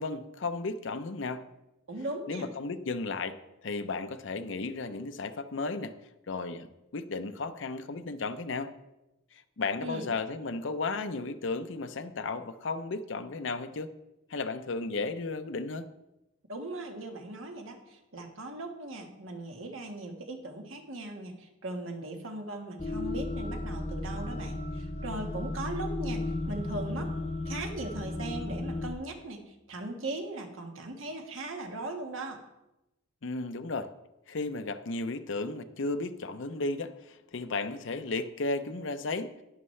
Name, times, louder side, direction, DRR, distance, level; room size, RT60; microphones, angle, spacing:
voice 1, 0.0-1.5 2.3-5.9 6.3-8.7 9.3-13.9 14.3-15.9 33.2-33.9 34.3-39.4, left 3 dB, 70° left, 9 dB, 0.6 m, -34 dB
voice 2, 1.9-2.5 9.8-10.1 16.5-27.1 27.4-32.4, right 2 dB, 80° right, 3 dB, 1.6 m, -39 dB
sound 1, 22.8-28.9, left 2 dB, 30° left, 0.6 m, -34 dB
11.0 x 10.5 x 3.2 m, 0.94 s
head